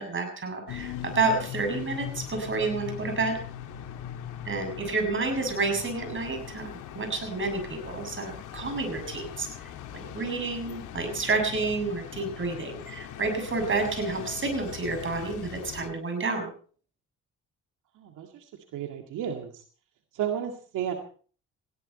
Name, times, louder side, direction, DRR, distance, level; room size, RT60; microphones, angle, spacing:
voice 1, 0.0-3.4 4.4-6.7 7.0-9.5 9.9-16.5, right 3 dB, 40° right, 5 dB, 7.0 m, -29 dB
sound 1, 0.7-15.9, left 10 dB, 85° left, 2.5 m, -40 dB
voice 2, 18.0-19.6 20.1-20.9, right 9 dB, 85° right, 4 dB, 2.2 m, -33 dB
19.5 x 16.5 x 4.3 m, 0.44 s
cardioid pair, 90°, 30 cm